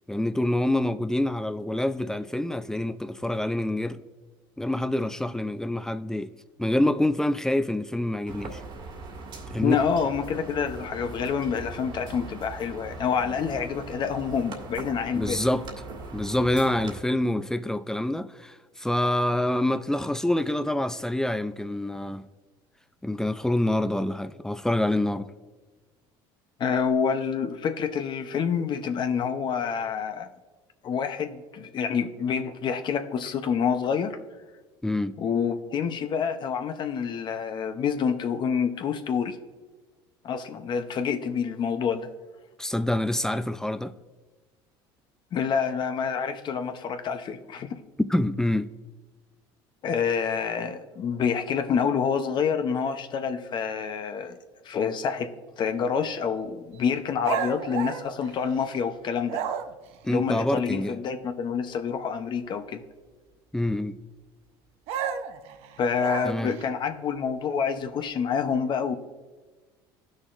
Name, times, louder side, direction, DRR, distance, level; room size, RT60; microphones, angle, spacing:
voice 1, 0.1-4.0 4.6-6.3 6.6-8.6 9.5-9.8 15.1-15.7 16.1-22.2 23.0-25.3 34.8-35.2 42.6-43.9 48.0-48.7 60.0-61.0 63.5-64.0 66.2-66.5, left 1 dB, 5° left, 0.4 m, -26 dB
sound 1, 8.3-17.0, right 3 dB, 50° right, 1.8 m, -40 dB
voice 2, 9.6-15.4 26.6-30.3 30.8-34.2 35.2-39.4 40.2-42.1 45.3-47.8 49.8-54.4 54.6-59.4 60.1-62.8 65.8-68.9, left 6 dB, 45° left, 0.7 m, -27 dB
sound 2, 57.2-58.8 59.3-59.9 64.9-66.7, right 8 dB, 70° right, 0.7 m, -32 dB
16.5 x 6.3 x 2.5 m
supercardioid pair, 100°, 11 cm